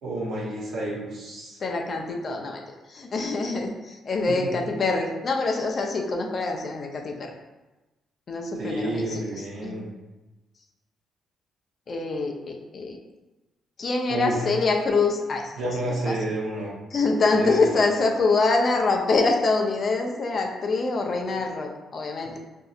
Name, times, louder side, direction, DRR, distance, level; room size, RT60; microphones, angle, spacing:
voice 1, 0.0-1.6 4.3-4.5 8.6-9.9 14.1-14.3 15.6-16.7 17.3-17.7, right 1 dB, 80° right, -7 dB, 0.8 m, -30 dB
voice 2, 1.6-2.6 2.9-7.3 8.3-9.8 11.9-13.0 13.8-15.5 16.1-16.2 16.9-22.4, left 3 dB, 45° left, 2 dB, 0.5 m, -25 dB
4.0 x 2.7 x 2.4 m, 1.1 s
cardioid pair, 90°, 0 cm